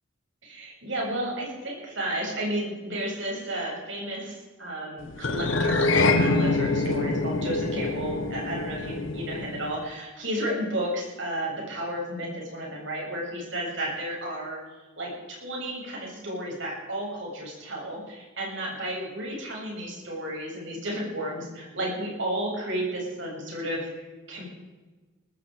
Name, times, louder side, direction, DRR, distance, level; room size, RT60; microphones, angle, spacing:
voice 1, 0.4-14.6 15.0-24.4, right 1 dB, 70° right, -2 dB, 7.5 m, -32 dB
sound 1, 5.2-9.8, left 3 dB, 80° left, 1.3 m, -25 dB
20.0 x 14.0 x 5.1 m, 1.2 s
head